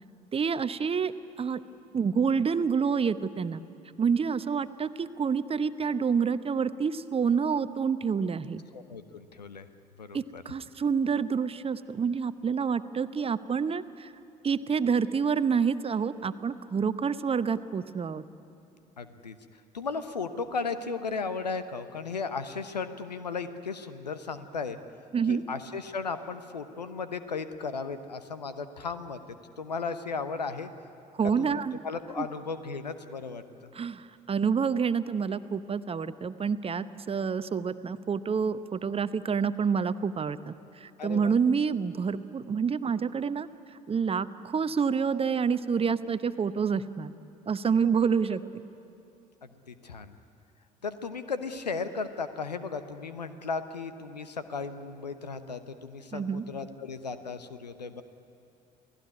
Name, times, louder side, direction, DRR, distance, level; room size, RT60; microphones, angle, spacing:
voice 1, 0.3-1.6 1.9-3.6 4.0-8.6 10.1-14.1 14.4-18.2 25.1-25.4 31.2-31.8 32.2-32.3 33.7-43.5 43.9-47.1 47.5-48.4 56.1-56.4, right 6 dB, 30° right, 13 dB, 0.9 m, -28 dB
voice 2, 8.7-9.7 10.0-10.4 19.0-19.3 19.7-24.8 25.3-29.2 29.6-30.7 31.4-33.4 41.0-41.3 49.4-50.1 50.8-58.0, left 4 dB, 85° left, 12 dB, 0.9 m, -35 dB
28.5 x 17.5 x 9.7 m, 2.6 s
figure-of-eight pair, 50°, 21 cm